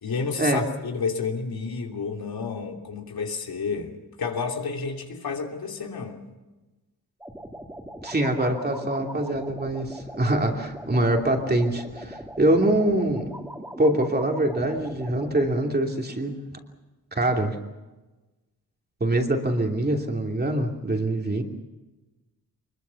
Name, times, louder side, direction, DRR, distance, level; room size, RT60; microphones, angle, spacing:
voice 1, 0.0-3.9 4.2-6.2, left 5 dB, 75° left, 2 dB, 3.1 m, -30 dB
sound 1, 7.2-15.5, right 1 dB, 5° right, 2.9 m, -40 dB
voice 2, 8.0-13.3 13.8-16.4 17.1-17.6 19.0-21.4, right 1 dB, 25° right, 2 dB, 2.9 m, -24 dB
24.0 x 22.0 x 7.1 m, 1.1 s
wide cardioid pair, 105°, 37 cm